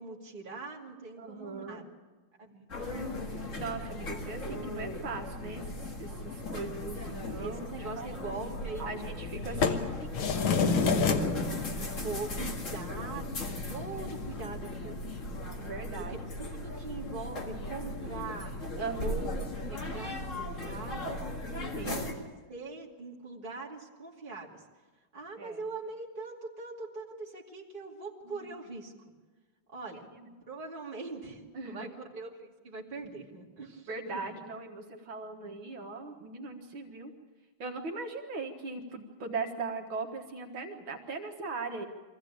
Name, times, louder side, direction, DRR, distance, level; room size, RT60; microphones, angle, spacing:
voice 1, 0.0-1.8 2.4-3.3 6.6-6.7 7.4-8.9 9.7-9.8 10.7-15.0 16.0-18.6 19.0-19.3 19.7-21.3 21.8-22.1 22.5-24.6 25.1-28.9 29.7-30.1 30.5-34.4, right 3 dB, 25° right, -3 dB, 2.6 m, -42 dB
voice 2, 1.2-1.8 3.6-7.7 8.0-8.2 8.8-9.9 15.6-16.2 18.8-19.3 21.7-22.0 25.4-25.6 28.2-28.5 29.9-30.3 31.5-31.9 33.9-37.1 37.6-41.9, right 3 dB, 75° right, 3 dB, 2.3 m, -39 dB
sound 1, 2.7-22.1, left 2 dB, 40° left, 2.1 m, -36 dB
sound 2, 9.2-14.4, left 6 dB, 90° left, 2.0 m, -32 dB
23.5 x 15.5 x 8.7 m, 1.3 s
omnidirectional pair, 2.2 m